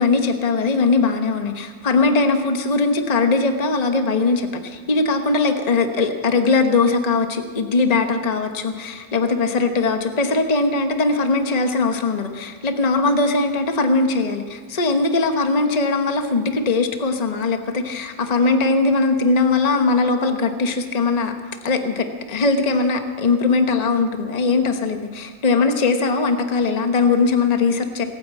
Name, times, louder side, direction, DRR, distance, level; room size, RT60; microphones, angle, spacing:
voice 1, 0.0-21.3 21.6-28.0, left 3 dB, 30° left, 6 dB, 1.1 m, -20 dB
19.0 x 8.7 x 8.3 m, 1.5 s
omnidirectional pair, 1.4 m